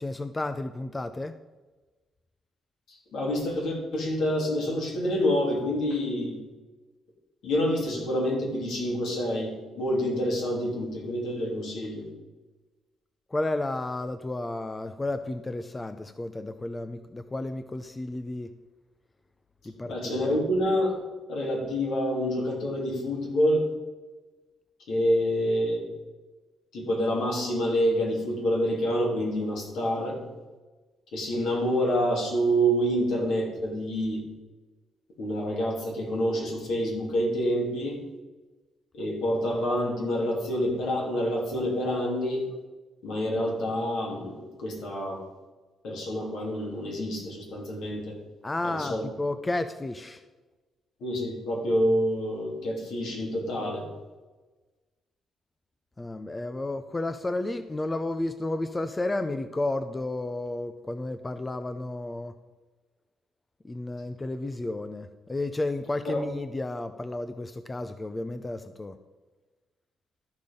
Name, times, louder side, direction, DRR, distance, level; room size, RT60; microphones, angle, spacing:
voice 1, 0.0-1.4 13.3-18.5 19.6-20.1 48.4-50.2 56.0-62.4 63.6-69.0, left 2 dB, 20° left, 10 dB, 0.5 m, -32 dB
voice 2, 2.9-6.4 7.4-12.1 19.7-21.0 21.3-23.7 24.9-25.9 26.7-30.2 31.1-34.2 35.2-38.0 38.9-42.5 43.0-45.3 45.8-48.2 48.6-49.0 51.0-53.9 66.0-66.2, equal, 75° left, -1 dB, 3.0 m, -27 dB
13.0 x 5.1 x 5.4 m, 1.2 s
cardioid pair, 90°, 0 cm